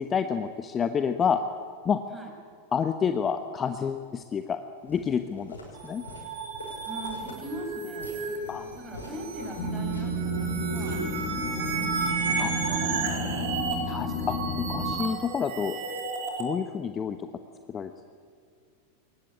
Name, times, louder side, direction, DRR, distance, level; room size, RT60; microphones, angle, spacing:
voice 1, 0.0-1.4 1.8-2.0 2.7-5.6 5.8-6.0 8.5-8.7 12.4-12.5 13.9-15.7 16.4-17.3 17.7-17.9, left 7 dB, 25° left, 9 dB, 1.0 m, -29 dB
Walk footsteps, 4.9-11.8, left 2 dB, 75° left, 6.0 m, -46 dB
sound 1, 5.7-16.4, right 4 dB, 50° right, 4.0 m, -33 dB
voice 2, 6.9-8.2 8.7-11.0 11.5-14.0, equal, 10° right, 2 dB, 6.2 m, -41 dB
sound 2, 9.6-14.9, equal, 40° left, 5.6 m, -31 dB
22.0 x 20.0 x 8.8 m, 2.1 s
figure-of-eight pair, 90°, 0 cm